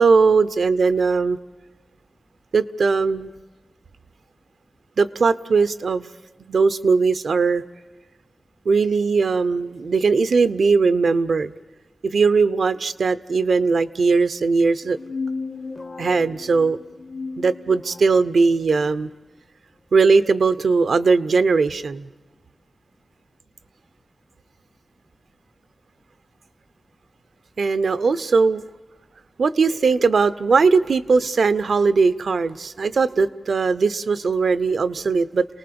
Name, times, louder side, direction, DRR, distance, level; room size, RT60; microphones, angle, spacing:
voice 1, 0.0-1.4 2.5-3.3 5.0-6.1 6.5-7.6 8.6-11.5 12.0-15.0 16.0-16.8 17.4-19.1 19.9-22.1 27.6-28.6 29.4-35.5, right 4 dB, 85° right, 14 dB, 0.7 m, -19 dB
sound 1, 14.8-18.2, left 4 dB, 55° left, 1.5 m, -34 dB
29.0 x 19.0 x 6.9 m, 1.3 s
cardioid pair, 45°, 0 cm